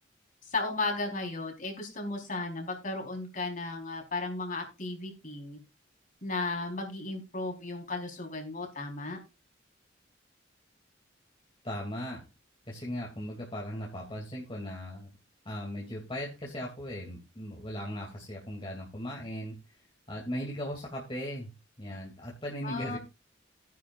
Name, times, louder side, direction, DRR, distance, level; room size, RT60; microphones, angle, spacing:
voice 1, 0.5-5.6 6.2-9.2 22.6-23.0, left 3 dB, 45° left, 2 dB, 4.4 m, -35 dB
voice 2, 11.6-12.2 12.7-15.1 15.4-19.5 20.1-21.5 21.8-23.0, equal, 25° left, -2 dB, 2.8 m, -38 dB
16.0 x 10.0 x 2.5 m, 0.25 s
head